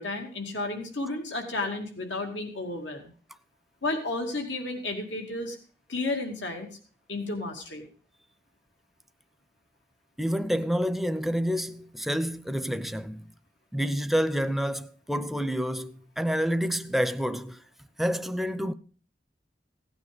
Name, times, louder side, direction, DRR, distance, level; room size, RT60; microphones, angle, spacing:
voice 1, 0.0-3.1 3.8-5.6 5.9-6.7 7.1-7.9, left 2 dB, 90° left, 2.4 m, -32 dB
voice 2, 10.2-13.3 13.7-17.6 18.0-18.7, equal, ahead, 0.5 m, -28 dB
16.5 x 9.6 x 5.1 m
head